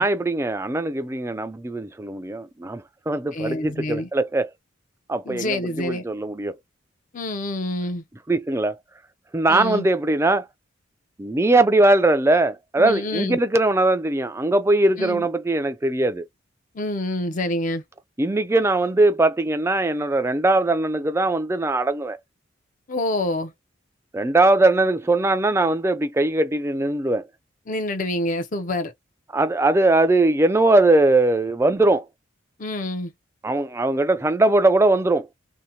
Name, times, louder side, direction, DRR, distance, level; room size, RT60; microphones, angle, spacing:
voice 1, 0.0-4.5 5.1-6.5 8.3-8.8 9.3-10.5 11.2-16.3 18.2-22.2 24.1-27.3 29.3-32.1 33.4-35.3, right 2 dB, 15° right, 0.3 m, -20 dB
voice 2, 3.3-4.1 5.2-6.0 7.1-8.0 9.5-9.9 12.8-13.4 15.0-15.3 16.7-17.8 22.9-23.5 27.7-28.9 32.6-33.1, left 1 dB, 40° left, 0.6 m, -27 dB
2.8 x 2.1 x 2.6 m
head